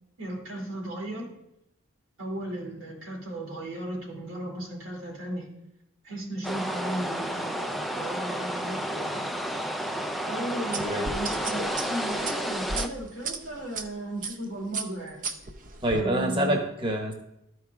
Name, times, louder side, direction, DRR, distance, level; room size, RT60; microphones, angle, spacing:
voice 1, 0.2-1.3 2.2-5.5 6.0-9.3 10.2-15.2 15.9-16.6, right 1 dB, 85° right, -1 dB, 2.6 m, -35 dB
sound 1, 6.4-12.9, equal, ahead, 0.4 m, -31 dB
sound 2, 10.7-13.8 14.2-14.4 14.7-16.0, right 4 dB, 40° right, 0.6 m, -34 dB
voice 2, 10.8-11.1 15.8-17.1, right 1 dB, 25° right, 2 dB, 1.1 m, -26 dB
13.0 x 4.7 x 3.5 m, 0.81 s
head